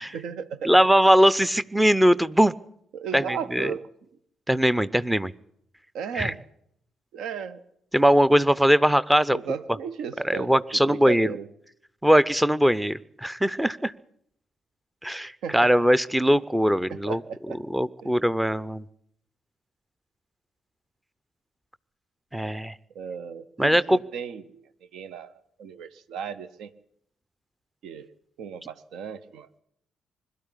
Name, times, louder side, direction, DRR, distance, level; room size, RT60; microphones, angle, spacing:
voice 1, 0.1-0.8 2.9-3.9 5.9-6.4 7.1-7.6 9.3-11.5 15.4-15.6 16.9-17.6 18.0-18.1 22.9-26.7 27.8-28.1 28.4-29.6, right 7 dB, 60° right, 13 dB, 0.9 m, -35 dB
voice 2, 0.6-2.5 3.1-3.7 4.5-5.3 6.1-6.3 7.9-9.4 10.2-11.3 12.0-13.9 15.0-17.2 17.7-18.9 22.3-22.7 23.6-24.0, equal, 5° right, 18 dB, 0.7 m, -21 dB
21.5 x 12.5 x 10.0 m, 0.72 s
figure-of-eight pair, 40°, 0 cm